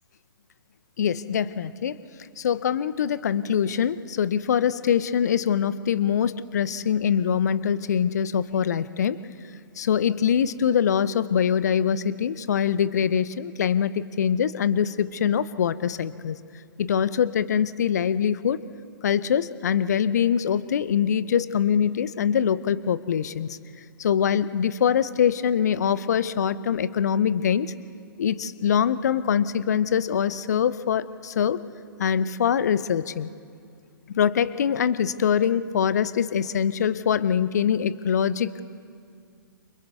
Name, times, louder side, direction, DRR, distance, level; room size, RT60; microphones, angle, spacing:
voice 1, 1.0-2.0 2.4-9.2 9.8-16.4 16.8-18.6 19.0-23.6 24.0-27.7 28.2-31.6 32.0-33.3 34.1-38.6, left 8 dB, 50° left, 17 dB, 0.7 m, -23 dB
29.5 x 29.0 x 3.5 m, 2.3 s
figure-of-eight pair, 125°, 12 cm